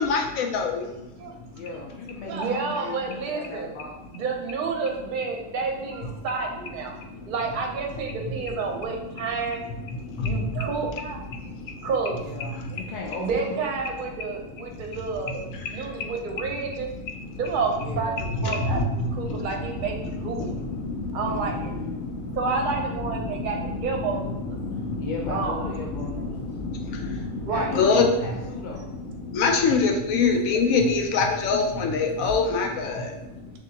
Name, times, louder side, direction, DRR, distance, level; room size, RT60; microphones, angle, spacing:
voice 1, 0.0-1.3 7.0-7.3 9.9-10.7 11.3-11.9 12.6-12.9 14.7-15.0 15.5-16.1 16.7-17.4 18.3-22.5 23.3-28.1 28.6-33.6, left 4 dB, 90° left, 2 dB, 1.0 m, -27 dB
voice 2, 1.5-4.0 8.3-8.6 12.1-13.8 17.8-18.2 21.3-22.0 25.0-26.4 27.5-28.9, left 3 dB, 65° left, -1 dB, 0.4 m, -36 dB
voice 3, 2.2-3.8 4.1-7.0 7.3-9.6 10.2-11.3 11.8-12.2 12.7-12.8 13.1-15.4 15.7-16.9 17.4-18.1 18.4-18.8 19.1-20.6 21.1-21.7 22.4-24.6 25.3-25.6 27.4-27.8, right 4 dB, 50° right, 2 dB, 0.7 m, -29 dB
6.0 x 2.6 x 2.7 m, 0.96 s
omnidirectional pair, 1.4 m